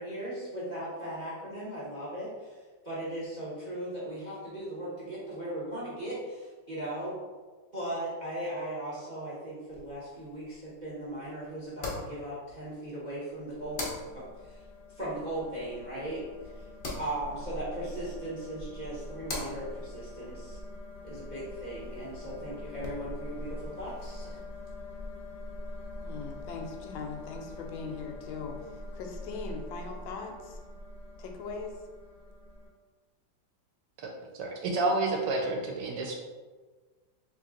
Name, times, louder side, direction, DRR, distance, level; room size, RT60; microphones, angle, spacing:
voice 1, 0.0-7.2 7.7-14.6 14.9-20.6 21.0-24.4, right 1 dB, 40° right, -8 dB, 0.6 m, -38 dB
sound 1, 9.7-22.5, left 2 dB, 55° left, 0.6 m, -45 dB
sound 2, 13.5-32.7, left 1 dB, 70° left, 1.2 m, -44 dB
voice 2, 26.0-28.6 28.9-30.6 31.2-31.8, left 4 dB, 90° left, 3 dB, 1.4 m, -40 dB
voice 3, 34.0-36.1, right 2 dB, 70° right, 1 dB, 1.1 m, -30 dB
3.1 x 2.9 x 3.6 m, 1.4 s
omnidirectional pair, 2.1 m